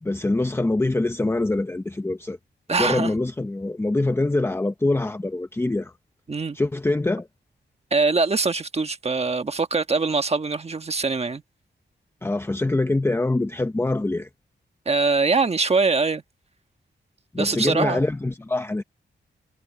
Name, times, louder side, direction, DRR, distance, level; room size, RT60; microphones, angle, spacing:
voice 1, 0.0-2.4 2.8-5.9 6.5-7.3 12.2-14.3 17.3-18.8, left 2 dB, 15° left, 0.7 m, -24 dB
voice 2, 2.7-3.1 6.3-6.6 7.9-11.4 14.8-16.2 17.4-18.0, right 4 dB, 35° right, 1.3 m, -23 dB
wide cardioid pair, 110°, 19 cm